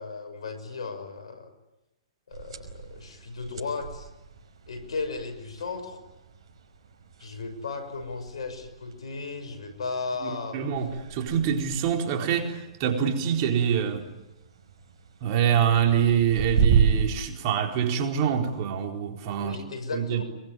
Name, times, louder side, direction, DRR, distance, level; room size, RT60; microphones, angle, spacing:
voice 1, 0.0-1.5 2.3-4.1 4.7-6.0 7.2-10.6 19.4-20.2, left 4 dB, 75° left, 6.3 m, -35 dB
sound 1, 2.3-17.2, right 6 dB, 65° right, 5.4 m, -33 dB
voice 2, 10.2-14.0 15.2-19.6 19.9-20.2, right 8 dB, 45° right, 4.3 m, -25 dB
25.0 x 23.0 x 9.5 m
hypercardioid pair, 130°, 3 cm